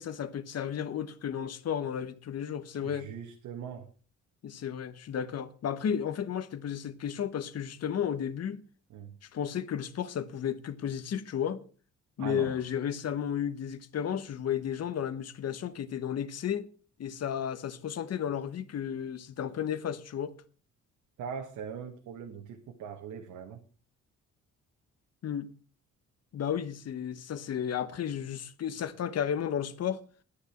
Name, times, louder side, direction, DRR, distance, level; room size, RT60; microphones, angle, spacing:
voice 1, 0.0-3.1 4.4-8.6 9.3-11.6 12.2-16.7 17.0-20.3 25.2-25.5 26.3-30.0, left 9 dB, 55° left, 1.1 m, -33 dB
voice 2, 2.8-3.9 8.9-9.1 12.2-12.6 21.2-23.6, right 7 dB, 85° right, 1.6 m, -41 dB
10.0 x 9.8 x 5.9 m
cardioid pair, 90°, 30 cm